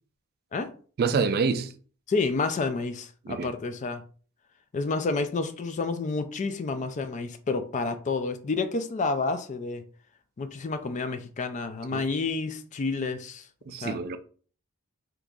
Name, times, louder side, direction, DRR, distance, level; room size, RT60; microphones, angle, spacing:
voice 1, 1.0-1.7 3.3-3.5 11.9-12.0 13.7-14.2, right 5 dB, 45° right, 0.3 m, -27 dB
voice 2, 2.1-4.0 4.7-9.8 10.4-13.5 13.8-14.0, left 3 dB, 35° left, 0.3 m, -29 dB
2.9 x 2.5 x 3.6 m
head